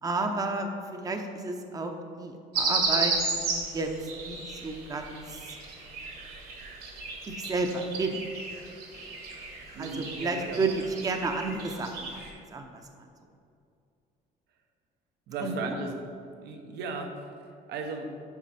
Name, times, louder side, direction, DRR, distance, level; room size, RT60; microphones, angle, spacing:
voice 1, 0.0-3.1 3.4-5.6 7.3-8.2 9.8-12.2 12.5-13.1 15.4-15.7, right 3 dB, 20° right, 4 dB, 0.7 m, -32 dB
sound 1, 2.5-12.3, right 3 dB, 60° right, 1.6 m, -34 dB
voice 2, 9.7-10.6 15.3-15.9 16.4-17.3 17.7-18.1, right 3 dB, 80° right, 4 dB, 0.9 m, -36 dB
8.2 x 5.8 x 4.3 m, 2.4 s
cardioid pair, 110°, 17 cm